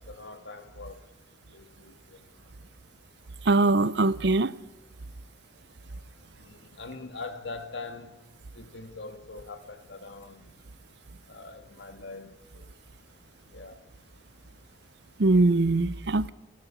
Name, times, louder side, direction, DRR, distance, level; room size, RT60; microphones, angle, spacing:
voice 1, 0.1-0.9 1.5-1.9 6.8-8.1 8.6-10.4 11.3-12.3 13.5-13.7, left 3 dB, 70° left, 1.9 m, -42 dB
voice 2, 3.5-4.5 15.2-16.3, right 2 dB, 60° right, 0.6 m, -22 dB
30.0 x 13.5 x 7.1 m
head